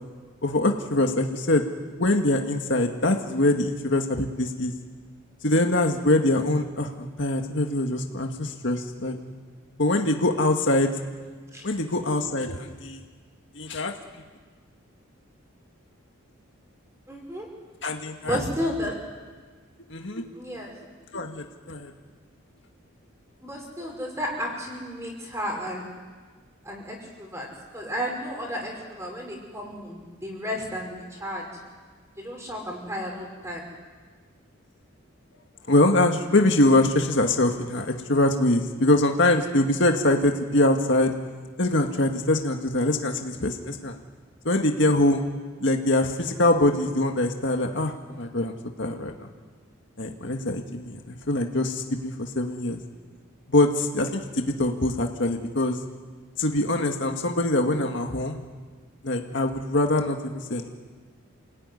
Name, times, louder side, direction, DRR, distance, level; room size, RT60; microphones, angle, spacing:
voice 1, 0.4-1.6 1.9-4.7 5.4-9.2 9.8-10.9 11.6-13.0 13.6-13.9 17.8-18.4 19.9-20.3 21.1-21.9 35.7-41.1 41.6-43.9 44.5-45.2 45.6-49.3 50.0-52.8 53.5-55.8 56.4-58.4 59.0-60.7, left 1 dB, 60° left, 3 dB, 1.9 m, -23 dB
voice 2, 17.1-17.5 18.2-18.9 20.3-20.7 23.4-25.8 26.6-27.5 27.7-31.5 32.2-33.6, equal, 15° right, -1 dB, 6.0 m, -32 dB
28.5 x 18.0 x 9.9 m, 1.5 s
head